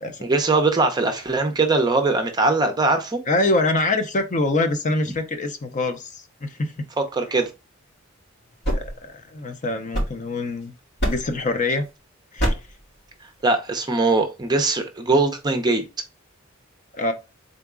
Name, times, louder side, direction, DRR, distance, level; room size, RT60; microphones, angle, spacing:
voice 1, 0.2-3.2 7.0-7.5 13.4-15.8, right 3 dB, 20° right, 0.6 m, -21 dB
voice 2, 3.3-6.9 8.7-10.7 11.1-11.9 12.3-12.5 16.9-17.1, left 2 dB, 35° left, 0.6 m, -25 dB
sound 1, 8.4-10.6 11.0-11.5 12.4-12.8, equal, 55° left, 2.5 m, -27 dB
3.9 x 3.5 x 3.6 m
head